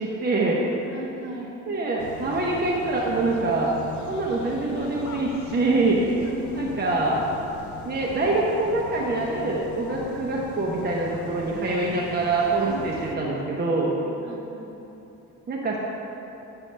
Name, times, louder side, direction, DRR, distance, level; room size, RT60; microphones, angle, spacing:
voice 1, 0.0-0.6 1.7-3.7 4.1-6.0 6.5-7.2 7.8-13.9 15.5-15.8, right 2 dB, 35° right, -3 dB, 0.9 m, -25 dB
voice 2, 0.7-1.5 6.2-6.9 12.6-13.1 14.0-14.7, left 1 dB, 65° right, -2 dB, 1.6 m, -38 dB
sound 1, 2.0-13.2, left 5 dB, 70° left, 0.7 m, -40 dB
8.8 x 6.4 x 3.3 m, 3.0 s
cardioid pair, 90°, 30 cm